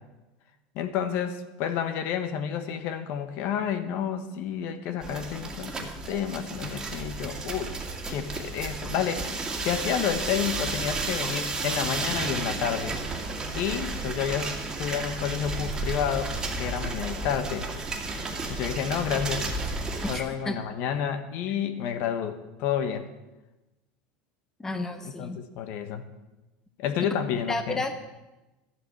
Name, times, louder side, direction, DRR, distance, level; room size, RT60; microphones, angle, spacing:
voice 1, 0.7-7.8 8.1-13.0 13.5-16.3 16.6-17.7 18.5-19.5 20.1-23.1 25.0-26.0 26.8-27.8, left 8 dB, 60° left, 9 dB, 1.3 m, -30 dB
sound 1, 5.0-20.2, right 3 dB, 15° right, 2.1 m, -32 dB
voice 2, 20.1-20.6 24.6-25.4 27.5-28.0, left 2 dB, 10° left, 8 dB, 0.9 m, -32 dB
12.5 x 8.0 x 7.8 m, 1.1 s
supercardioid pair, 140°, 4 cm